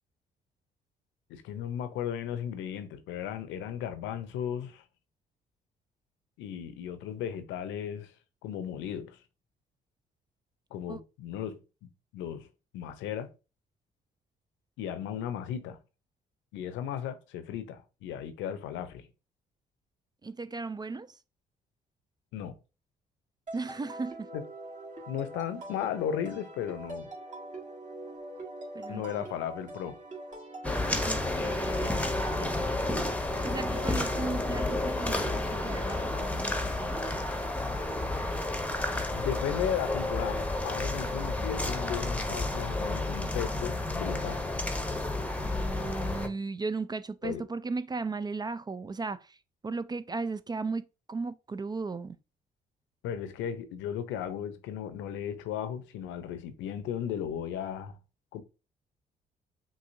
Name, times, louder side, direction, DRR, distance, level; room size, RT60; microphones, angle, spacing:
voice 1, 1.3-4.8 6.4-8.1 8.4-9.2 10.7-12.5 12.7-13.3 14.8-15.8 16.5-19.1 22.3-22.5 24.3-24.4 25.1-27.1 28.9-30.0 39.1-44.4 47.2-47.4 53.0-58.0 58.3-58.4, left 9 dB, 70° left, 0.7 m, -35 dB
voice 2, 20.2-21.2 23.5-24.3 28.7-29.3 31.0-32.8 33.4-37.0 45.4-49.4 49.6-52.2, right 4 dB, 20° right, 0.3 m, -36 dB
sound 1, 23.5-37.2, right 1 dB, 40° right, 1.9 m, -44 dB
sound 2, 30.6-46.3, left 2 dB, 5° left, 0.9 m, -31 dB
5.4 x 2.7 x 2.6 m
hypercardioid pair, 45°, 20 cm